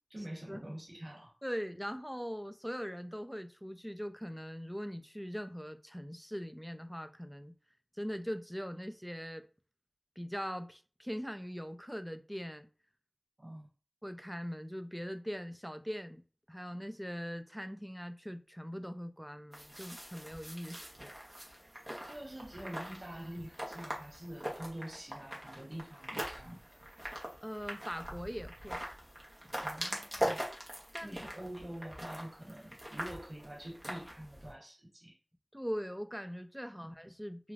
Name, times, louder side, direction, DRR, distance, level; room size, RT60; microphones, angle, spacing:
voice 1, 0.1-1.4 13.4-13.7 22.0-26.8 29.5-30.4 30.9-35.2 36.8-36.9, right 1 dB, 80° right, 0.8 m, -46 dB
voice 2, 1.4-7.6 7.9-9.5 10.2-12.7 14.0-16.2 16.5-21.1 27.4-28.8 30.9-31.2 35.5-37.5, equal, ahead, 0.3 m, -41 dB
sound 1, 19.5-34.5, equal, 25° right, 0.8 m, -42 dB
3.1 x 2.4 x 2.4 m
wide cardioid pair, 40°, 0 cm